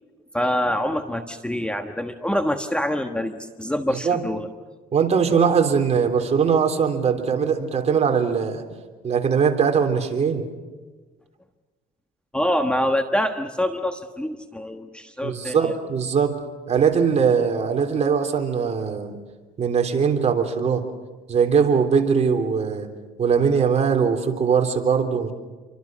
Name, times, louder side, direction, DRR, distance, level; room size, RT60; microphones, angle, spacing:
voice 1, 0.3-4.5 12.3-15.8, equal, 5° left, 6 dB, 1.4 m, -25 dB
voice 2, 3.9-4.2 4.9-8.6 9.0-10.4 15.2-16.4 16.7-19.2 19.6-20.8 21.3-22.9 23.2-25.3, right 6 dB, 40° right, 4 dB, 3.5 m, -21 dB
28.5 x 24.5 x 6.3 m, 1.3 s
cardioid pair, 110°, 17 cm